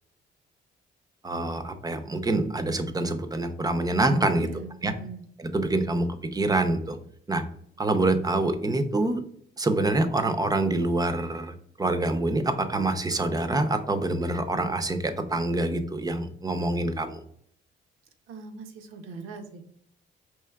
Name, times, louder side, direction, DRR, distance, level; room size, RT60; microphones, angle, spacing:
voice 1, 1.2-4.5 4.8-4.9 5.4-7.0 7.3-7.4 7.8-9.2 9.6-17.2, right 2 dB, 20° right, 9 dB, 0.5 m, -26 dB
voice 2, 4.3-5.2 18.3-19.7, right 4 dB, 85° right, 5 dB, 0.7 m, -41 dB
4.6 x 3.0 x 2.2 m, 0.69 s
cardioid pair, 90°, 20 cm